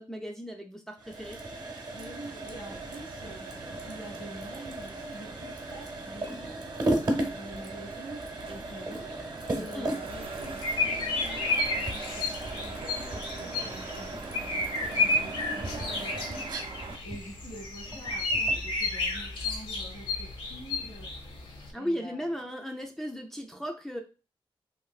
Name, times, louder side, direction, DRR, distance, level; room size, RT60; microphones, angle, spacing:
voice 1, 0.0-1.4 9.5-9.9 21.7-24.0, equal, 5° left, 2 dB, 0.3 m, -36 dB
sound 1, 1.0-18.7, right 1 dB, 45° right, 0.8 m, -36 dB
voice 2, 1.9-6.5 7.2-21.1 21.7-22.5, right 1 dB, 85° left, -4 dB, 1.3 m, -47 dB
sound 2, 2.0-17.0, right 4 dB, 80° right, 0.5 m, -45 dB
sound 3, 10.1-21.7, left 2 dB, 70° left, 0.7 m, -32 dB
3.1 x 2.8 x 2.3 m, 0.32 s
wide cardioid pair, 135°, 9 cm